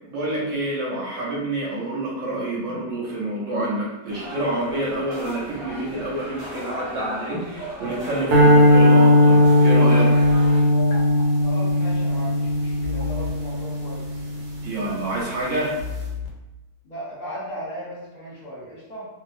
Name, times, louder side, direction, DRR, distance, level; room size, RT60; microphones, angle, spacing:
voice 1, 0.0-10.1 14.6-15.7, right 1 dB, 60° right, -5 dB, 1.2 m, -27 dB
sound 1, 4.1-10.6, equal, 45° right, 1.0 m, -37 dB
sound 2, 8.3-14.6, left 1 dB, 85° right, 1.2 m, -17 dB
sound 3, 10.7-11.2 12.8-13.3 14.8-15.2 15.8-16.3, left 5 dB, 65° left, 0.8 m, -32 dB
voice 2, 11.4-14.1 16.8-19.1, equal, 30° left, -8 dB, 1.0 m, -37 dB
2.8 x 2.4 x 2.5 m, 0.98 s
omnidirectional pair, 1.6 m